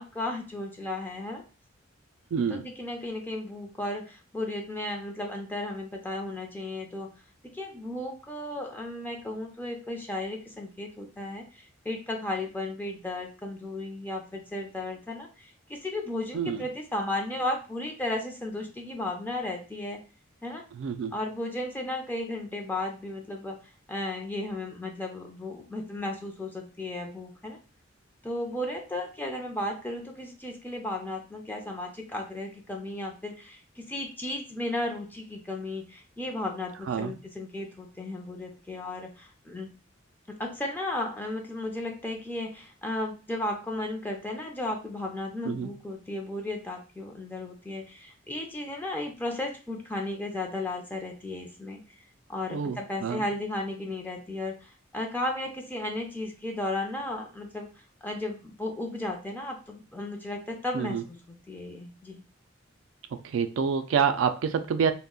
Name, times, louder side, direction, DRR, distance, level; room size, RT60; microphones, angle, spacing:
voice 1, 0.0-1.4 2.5-7.1 7.4-20.0 20.4-20.6 21.1-23.6 23.9-27.6 28.2-39.7 40.3-51.8 52.3-57.7 58.0-62.2, left 1 dB, 10° left, 1 dB, 0.4 m, -34 dB
voice 2, 2.3-2.6 16.3-16.7 20.8-21.1 36.9-37.1 45.4-45.7 52.5-53.2 60.7-61.0 63.1-64.9, right 6 dB, 75° right, 9 dB, 0.3 m, -27 dB
2.2 x 2.1 x 3.6 m, 0.34 s
head